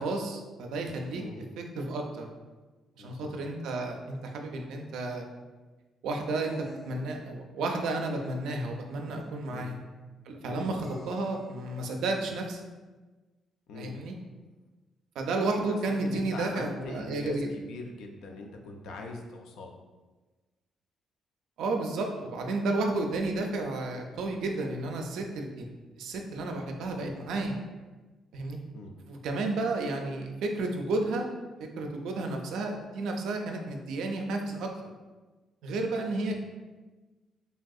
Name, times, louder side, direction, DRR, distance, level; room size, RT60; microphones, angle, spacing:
voice 1, 0.0-1.2 1.6-2.3 3.0-5.3 6.0-6.5 6.9-9.8 10.3-12.6 13.7-14.1 15.2-17.5 21.6-27.6 28.3-28.6 29.1-31.3 31.8-34.7 35.6-36.4, right 2 dB, 85° right, 2 dB, 0.4 m, -32 dB
voice 2, 3.0-3.3 9.5-9.7 10.4-10.7 13.7-13.9 16.0-19.8 28.7-28.9 36.3-36.4, left 2 dB, 85° left, 3 dB, 0.4 m, -42 dB
sound 1, 4.3-4.4 6.4-7.3 9.2-9.3 10.8-11.5, left 1 dB, 60° left, 1.0 m, -47 dB
3.2 x 2.6 x 2.3 m, 1.3 s
cardioid pair, 90°, 0 cm